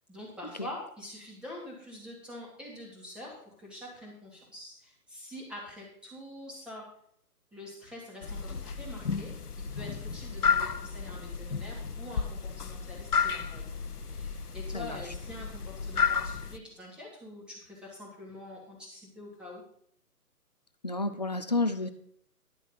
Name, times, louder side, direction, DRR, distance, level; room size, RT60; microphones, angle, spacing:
voice 1, 0.1-6.8 7.5-13.8 14.1-19.6, left 1 dB, ahead, -4 dB, 2.5 m, -45 dB
sound 1, 8.2-16.6, left 6 dB, 75° left, 0.9 m, -32 dB
voice 2, 20.8-21.9, left 2 dB, 30° left, 10 dB, 0.5 m, -30 dB
11.5 x 7.0 x 5.7 m, 0.66 s
figure-of-eight pair, 140°, 46 cm